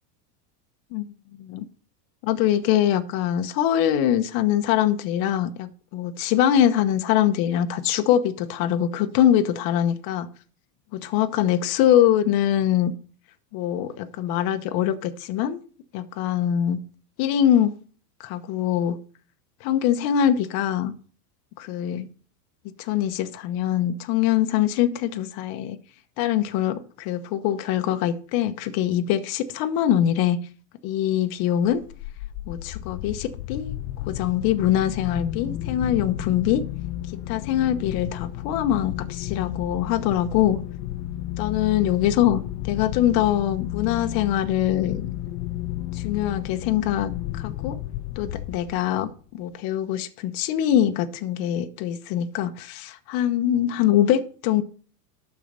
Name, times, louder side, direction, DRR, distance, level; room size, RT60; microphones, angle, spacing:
voice 1, 2.2-10.3 10.9-12.9 13.5-15.6 15.9-16.8 17.2-17.7 18.2-19.0 19.6-20.9 21.6-22.1 22.8-25.8 26.2-30.4 30.8-31.8 32.5-33.8 34.1-36.6 37.3-40.6 41.4-45.1 45.9-47.8 48.2-54.6, left 11 dB, 45° left, 1.0 m, -23 dB
sound 1, 31.7-49.0, left 13 dB, 70° left, 0.8 m, -32 dB
12.0 x 4.6 x 6.7 m
supercardioid pair, 150°, 49 cm